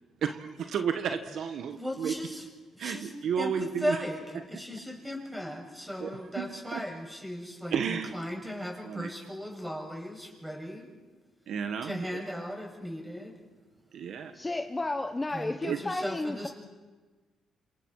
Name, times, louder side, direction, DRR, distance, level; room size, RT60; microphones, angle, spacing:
voice 1, 0.2-2.1 2.8-4.0 6.0-6.4 6.7-6.8 7.7-8.2 8.8-9.1 11.5-12.2 13.9-14.3 15.6-15.8, right 7 dB, 70° right, 7 dB, 1.5 m, -32 dB
voice 2, 1.8-2.4 2.7-3.1 3.4-3.5 3.8-4.2 4.5-10.9 11.8-13.3 15.3-16.5, equal, 5° right, 0 dB, 7.3 m, -37 dB
voice 3, 14.3-16.5, left 2 dB, 20° left, 6 dB, 1.1 m, -32 dB
28.5 x 27.0 x 4.9 m, 1.3 s
cardioid pair, 90°, 0 cm